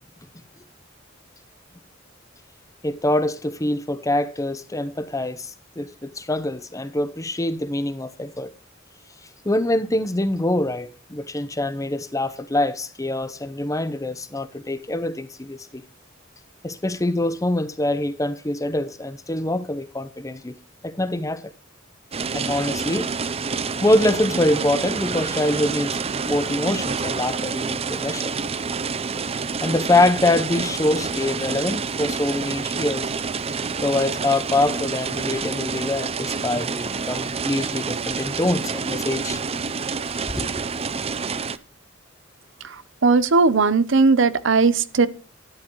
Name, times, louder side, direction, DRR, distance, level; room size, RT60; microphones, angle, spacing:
voice 1, 2.8-8.5 9.4-15.8 16.6-20.5 20.8-21.5 22.3-23.1 23.8-26.0 26.2-28.3 29.6-33.1 33.8-39.4 40.3-40.7, left 1 dB, 15° left, 0.8 m, -24 dB
sound 1, 22.1-41.6, right 5 dB, 30° right, 0.6 m, -28 dB
voice 2, 43.0-45.1, right 4 dB, 70° right, 0.7 m, -17 dB
12.0 x 10.5 x 3.0 m
head